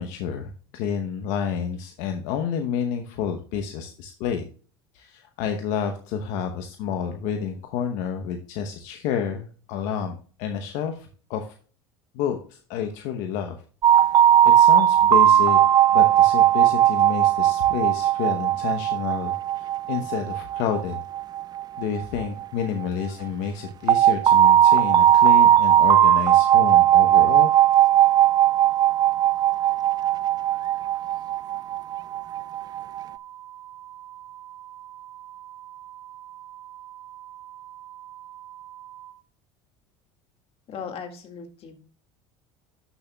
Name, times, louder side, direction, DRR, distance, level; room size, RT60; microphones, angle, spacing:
voice 1, 0.0-4.4 4.9-11.5 12.1-13.6 14.5-15.6 15.9-21.0 21.8-27.5, left 7 dB, 70° left, 5 dB, 0.9 m, -29 dB
sound 1, 13.8-22.6 23.9-33.0, right 11 dB, 30° right, 0.3 m, -18 dB
sound 2, 27.8-39.1, right 12 dB, 55° right, 1.8 m, -44 dB
voice 2, 40.7-41.8, left 6 dB, 45° left, 5 dB, 1.9 m, -37 dB
11.5 x 7.0 x 2.3 m, 0.41 s
supercardioid pair, 95°, 13 cm